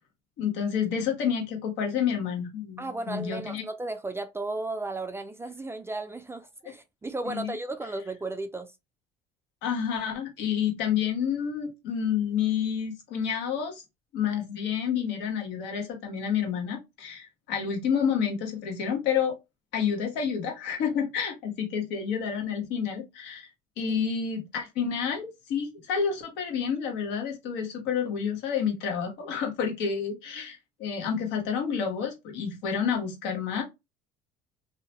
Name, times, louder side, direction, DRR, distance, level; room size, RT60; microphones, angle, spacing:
voice 1, 0.4-3.6 7.3-7.5 9.6-13.8 14.1-19.3 19.7-23.5 23.8-33.6, left 7 dB, 75° left, 1.1 m, -29 dB
voice 2, 2.8-8.7, right 2 dB, 15° right, 0.4 m, -34 dB
2.7 x 2.2 x 2.8 m
supercardioid pair, 95°, 18 cm